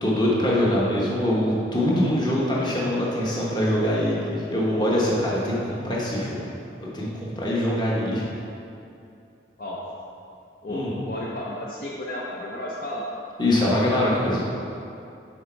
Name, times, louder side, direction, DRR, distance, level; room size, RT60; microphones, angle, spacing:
voice 1, 0.0-8.2 10.7-10.9 13.4-14.4, left 1 dB, 25° left, -5 dB, 1.1 m, -23 dB
voice 2, 10.6-13.0, left 1 dB, 50° left, -4 dB, 0.6 m, -33 dB
6.5 x 4.3 x 4.5 m, 2.6 s
head